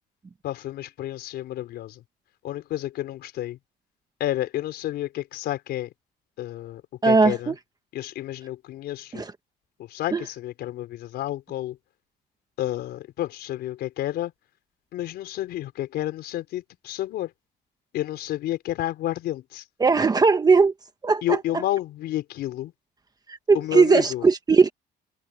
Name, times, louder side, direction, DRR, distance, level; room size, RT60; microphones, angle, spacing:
voice 1, 0.4-2.0 2.4-3.6 4.2-5.9 6.4-7.6 7.9-9.3 9.8-11.8 12.6-14.3 14.9-17.3 17.9-19.7 21.2-22.7 23.5-24.3, left 14 dB, 75° left, 4.6 m, -30 dB
voice 2, 7.0-7.5 9.1-9.3 10.1-10.2 19.8-20.7 21.0-21.4 23.3-24.7, right 4 dB, 25° right, 1.1 m, -19 dB
cardioid pair, 110°, 17 cm